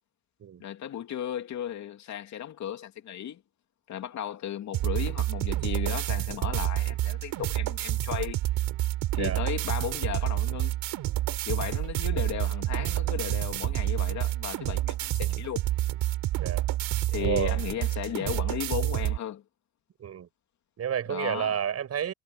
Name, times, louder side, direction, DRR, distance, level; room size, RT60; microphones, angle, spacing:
voice 1, 0.6-3.4 3.9-8.5 9.1-10.7 11.4-15.7 17.1-19.4 21.1-21.5, left 10 dB, 55° left, 2.9 m, -35 dB
sound 1, 4.7-19.2, right 15 dB, 70° right, 5.0 m, -29 dB
voice 2, 17.2-17.6 20.0-20.3 20.8-22.1, right 9 dB, 45° right, 6.5 m, -30 dB
cardioid pair, 115°, 35 cm